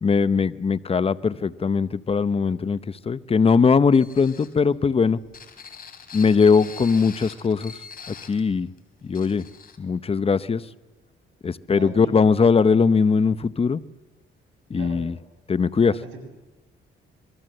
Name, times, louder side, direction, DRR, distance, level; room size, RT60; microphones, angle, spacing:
voice 1, 0.0-5.2 6.1-7.8 8.1-8.7 9.0-9.4 9.8-10.6 11.4-13.8 14.7-15.2 15.5-15.9, left 5 dB, 30° left, 16 dB, 0.9 m, -20 dB
sound 1, 3.9-8.4 8.8-8.9 9.1-9.8, left 6 dB, 45° left, 3.5 m, -43 dB
voice 2, 11.7-12.1 14.7-15.0 15.9-16.2, right 5 dB, 80° right, 2 dB, 7.9 m, -38 dB
27.0 x 22.0 x 7.9 m, 1.2 s
cardioid pair, 90°, 20 cm